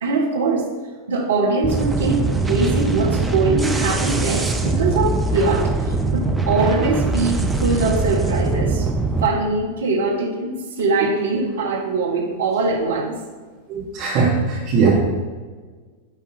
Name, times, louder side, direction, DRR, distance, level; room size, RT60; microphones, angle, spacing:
voice 1, 0.0-0.7 1.1-8.9 9.2-13.1, right 3 dB, 65° right, 0 dB, 1.4 m, -22 dB
sound 1, 1.6-9.3, right 3 dB, 5° right, 0.7 m, -22 dB
voice 2, 13.7-14.9, right 5 dB, 40° right, -6 dB, 1.8 m, -20 dB
10.0 x 3.6 x 5.5 m, 1.4 s
figure-of-eight pair, 90°, 0 cm